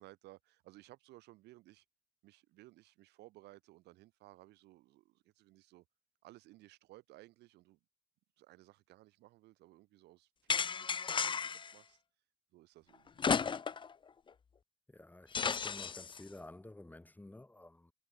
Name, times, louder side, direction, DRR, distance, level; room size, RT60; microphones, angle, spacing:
voice 1, 0.0-1.8 2.2-5.9 6.2-7.8 8.4-12.0 12.5-13.2, right 18 dB, 85° right, 7.1 m, -59 dB
sound 1, 10.5-11.7 13.2-13.9 14.3-14.4 15.3-16.2, left 6 dB, 30° left, 0.9 m, -34 dB
voice 2, 14.9-17.9, left 2 dB, 10° left, 7.1 m, -52 dB
cardioid pair, 110°, 17 cm